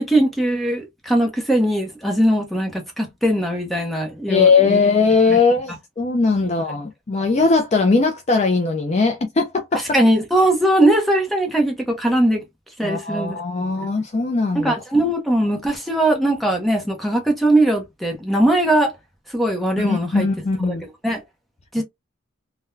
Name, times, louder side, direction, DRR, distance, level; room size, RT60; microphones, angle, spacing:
voice 1, 0.0-4.8 9.9-12.4 12.8-13.9 14.5-18.9 19.3-20.3 20.7-20.8 21.0-21.2 21.7-21.8, right 1 dB, ahead, 0.7 m, -20 dB
voice 2, 4.3-9.8 12.8-14.7 19.8-20.8 21.8-21.9, left 4 dB, 30° left, 0.4 m, -19 dB
3.7 x 2.2 x 2.6 m
head